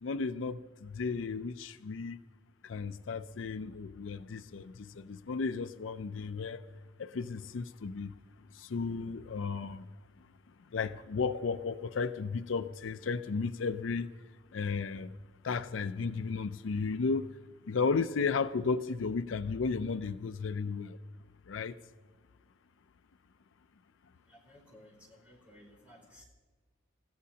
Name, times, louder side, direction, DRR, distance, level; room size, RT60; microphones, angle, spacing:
voice 1, 0.0-2.2 2.6-6.6 7.0-8.1 8.5-9.9 10.7-14.1 14.5-15.1 15.4-17.3 17.7-21.0 21.5-21.8, left 4 dB, 75° left, 0.5 m, -34 dB
voice 2, 24.3-26.2, equal, 5° right, 4.5 m, -57 dB
29.0 x 14.5 x 2.9 m
head